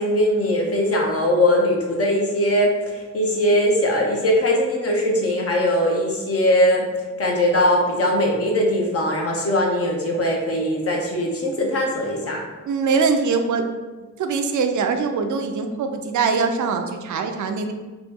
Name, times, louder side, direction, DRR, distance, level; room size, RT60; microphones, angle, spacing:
voice 1, 0.0-6.8 7.2-12.4, left 1 dB, 50° left, -1 dB, 0.8 m, -20 dB
voice 2, 12.7-13.7 14.2-17.7, right 5 dB, 75° right, 6 dB, 0.5 m, -22 dB
3.0 x 3.0 x 3.5 m, 1.3 s
cardioid pair, 90°, 29 cm